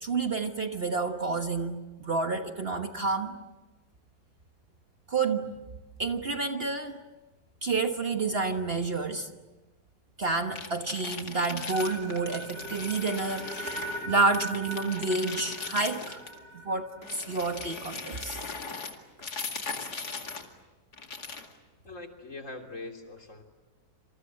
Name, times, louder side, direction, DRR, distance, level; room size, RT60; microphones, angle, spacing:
voice 1, 0.0-3.4 5.1-5.5 6.0-7.0 7.6-9.3 10.2-13.7 14.1-16.2 16.6-18.4, right 3 dB, 40° right, 6 dB, 1.4 m, -29 dB
sound 1, 10.5-14.1 14.3-16.4 17.0-20.5 20.9-21.5, left 4 dB, 85° left, 2.8 m, -39 dB
sound 2, 11.7-17.8, right 1 dB, 80° right, 5.6 m, -41 dB
voice 2, 21.8-23.4, left 2 dB, 50° left, 3 dB, 3.5 m, -42 dB
27.5 x 27.0 x 7.6 m, 1.2 s
omnidirectional pair, 1.7 m